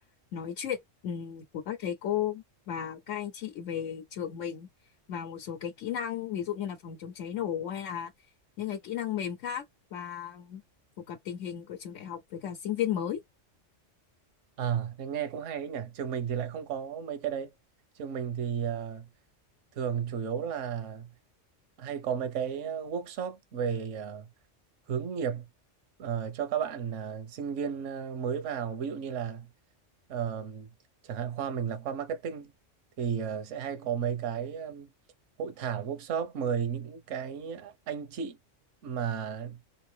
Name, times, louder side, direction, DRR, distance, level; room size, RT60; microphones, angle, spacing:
voice 1, 0.3-0.8 1.0-4.7 5.1-8.1 8.6-9.7 9.9-10.6 11.0-13.2, left 9 dB, 80° left, 1.0 m, -34 dB
voice 2, 14.6-17.5 18.0-19.1 19.7-21.1 21.8-24.3 24.9-25.5 26.0-29.5 30.1-30.7 31.0-32.5 33.0-34.9 35.4-38.4 38.8-39.6, right 7 dB, 75° right, 1.1 m, -33 dB
3.2 x 2.6 x 3.2 m
omnidirectional pair, 1.3 m